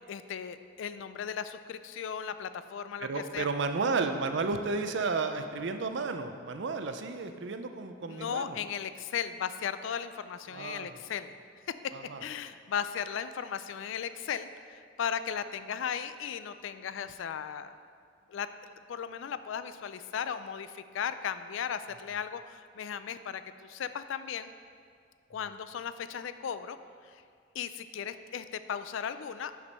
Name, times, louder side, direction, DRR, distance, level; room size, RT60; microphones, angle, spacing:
voice 1, 0.1-3.5 8.1-11.3 12.2-17.8 18.3-18.5 18.9-24.5 25.3-26.8 27.5-29.5, left 8 dB, 70° left, 12 dB, 0.3 m, -36 dB
voice 2, 3.0-8.6 10.5-10.9 11.9-12.2, right 4 dB, 60° right, 7 dB, 0.5 m, -32 dB
6.1 x 5.9 x 5.4 m, 2.1 s
head